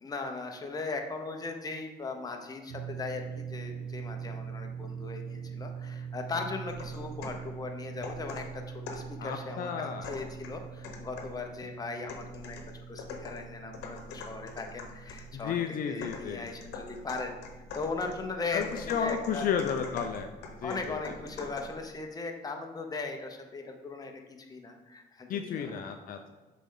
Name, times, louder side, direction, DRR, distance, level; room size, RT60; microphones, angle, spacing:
voice 1, 0.0-12.6 12.9-17.4 17.7-19.5 20.6-25.8, left 3 dB, 20° left, 3 dB, 0.8 m, -38 dB
sound 1, 2.7-20.3, right 7 dB, 85° right, 0.8 m, -44 dB
sound 2, 6.7-7.5 8.0-9.2 10.0-11.4 12.1-15.3 16.0-21.8, left 3 dB, 80° left, 1.0 m, -44 dB
voice 2, 9.2-10.1 15.3-16.4 18.5-20.3 20.6-21.0 25.3-26.3, left 7 dB, 60° left, 5 dB, 0.5 m, -32 dB
6.8 x 4.3 x 3.8 m, 1.2 s
cardioid pair, 110°, 17 cm